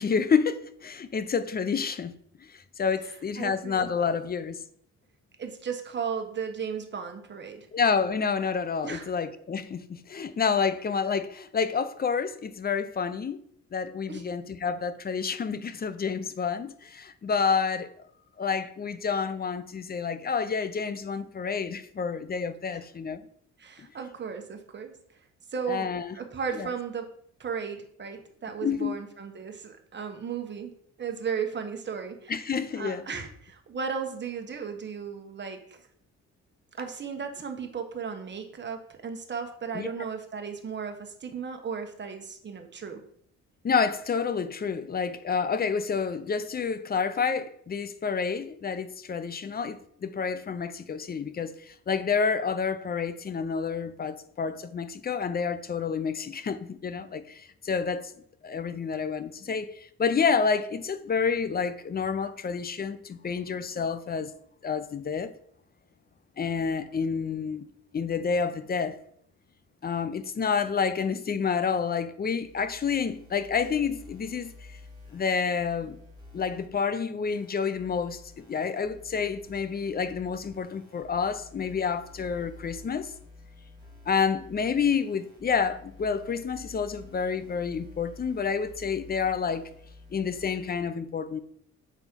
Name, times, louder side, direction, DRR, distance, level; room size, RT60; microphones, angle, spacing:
voice 1, 0.0-2.1 2.8-4.6 7.7-13.4 13.7-17.9 18.4-23.2 25.7-26.1 26.5-26.7 28.6-29.0 32.3-33.0 39.7-39.9 43.6-58.1 58.4-64.3 64.6-65.3 66.4-67.7 67.9-69.0 69.8-74.5 75.1-76.0 76.3-83.1 84.1-89.7 90.1-91.4, left 6 dB, 30° left, 0.6 m, -29 dB
voice 2, 3.0-3.9 5.4-7.7 8.8-9.1 14.1-14.2 22.7-22.8 23.6-24.9 25.5-27.1 27.4-30.7 31.0-32.4 32.8-35.8 36.8-43.0, right 6 dB, 35° right, 1.2 m, -35 dB
sound 1, 72.4-76.7 77.3-90.8, left 3 dB, 15° right, 2.3 m, -50 dB
6.3 x 4.2 x 5.2 m
cardioid pair, 90°, 30 cm